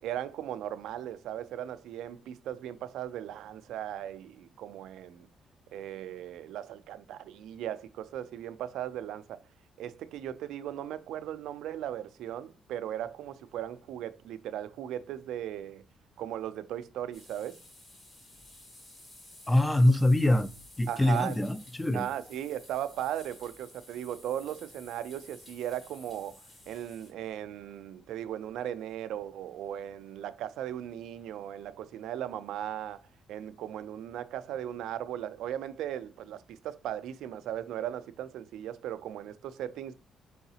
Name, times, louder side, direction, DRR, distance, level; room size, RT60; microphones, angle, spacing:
voice 1, 0.0-5.3 5.7-9.4 9.8-15.8 16.2-17.6 20.9-21.4 21.9-26.4 26.7-33.0 33.3-39.9, right 11 dB, 85° right, 0.4 m, -37 dB
sound 1, 17.1-27.1, left 1 dB, 40° left, 1.9 m, -53 dB
voice 2, 19.5-20.5 20.8-22.1, left 1 dB, 15° left, 0.4 m, -24 dB
4.8 x 3.8 x 2.7 m
cardioid pair, 90°, 0 cm